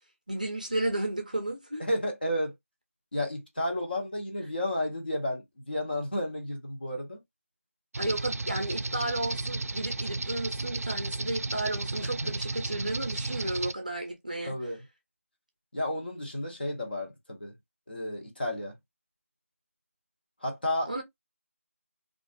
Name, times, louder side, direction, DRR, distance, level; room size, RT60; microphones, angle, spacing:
voice 1, 0.3-1.9 8.0-14.6 20.9-21.0, right 1 dB, 30° right, 0.6 m, -33 dB
voice 2, 1.8-2.5 3.1-7.2 12.0-12.3 14.5-14.8 15.7-17.5 17.9-18.7 20.4-20.9, left 1 dB, 40° left, 0.9 m, -32 dB
sound 1, 7.9-13.7, right 3 dB, 85° right, 0.4 m, -33 dB
2.4 x 2.4 x 2.4 m
figure-of-eight pair, 180°, 8 cm